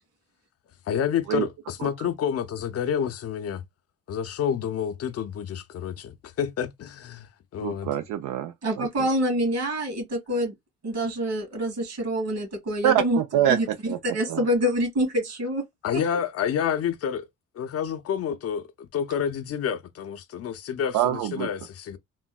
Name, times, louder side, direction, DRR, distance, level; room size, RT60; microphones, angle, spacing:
voice 1, 0.9-3.6 4.1-7.9 15.8-17.3 17.6-22.0, left 8 dB, 55° left, 0.5 m, -29 dB
voice 2, 7.6-8.9 12.8-14.0 14.3-14.4 20.9-21.5, right 11 dB, 85° right, 0.5 m, -25 dB
voice 3, 8.6-10.5 10.8-13.2 13.5-13.7 14.1-15.6 15.9-16.0, equal, 55° right, 2.1 m, -26 dB
3.7 x 2.1 x 2.2 m
cardioid pair, 90°, 30 cm